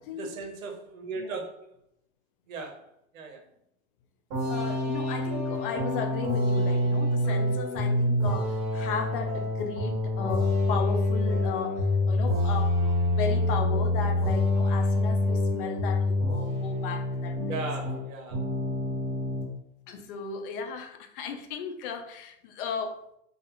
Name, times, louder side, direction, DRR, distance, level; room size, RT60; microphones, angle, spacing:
voice 1, 0.2-1.7 2.5-2.8 3.1-3.4 17.5-18.4, right 3 dB, 70° right, 3 dB, 0.8 m, -37 dB
sound 1, 4.3-18.0 18.3-19.5, left 1 dB, 45° right, 1.2 m, -26 dB
voice 2, 4.4-17.6 19.9-23.0, left 6 dB, 40° left, 6 dB, 0.4 m, -36 dB
2.4 x 2.4 x 2.8 m, 0.74 s
hypercardioid pair, 125°, 42 cm